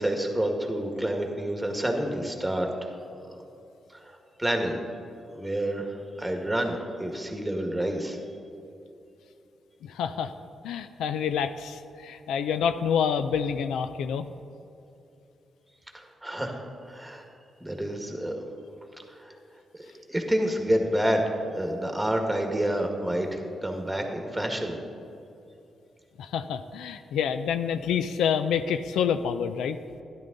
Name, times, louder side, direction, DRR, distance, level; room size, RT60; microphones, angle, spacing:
voice 1, 0.0-2.9 3.2-3.4 4.0-4.8 5.3-8.2 15.9-17.2 17.6-18.4 19.1-19.3 19.7-24.8, right 1 dB, 10° right, 3 dB, 1.8 m, -29 dB
voice 2, 9.8-10.3 10.6-14.3 26.2-29.8, left 7 dB, 90° left, 10 dB, 0.4 m, -27 dB
12.5 x 10.5 x 4.0 m, 2.7 s
cardioid pair, 65°, 0 cm